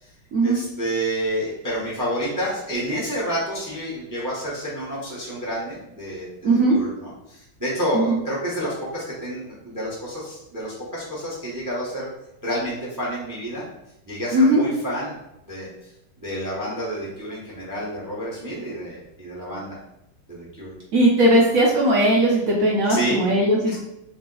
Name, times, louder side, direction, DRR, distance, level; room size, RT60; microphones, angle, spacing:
voice 1, 0.4-12.1 12.4-13.7 14.0-15.2 15.4-15.9 16.2-19.8 20.3-20.7 22.9-23.2 23.7-23.8, equal, 20° right, -6 dB, 0.5 m, -29 dB
voice 2, 6.4-6.8 7.9-8.2 14.3-14.6 20.9-23.8, right 1 dB, 65° right, -3 dB, 0.9 m, -18 dB
3.3 x 2.8 x 3.8 m, 0.87 s
omnidirectional pair, 2.0 m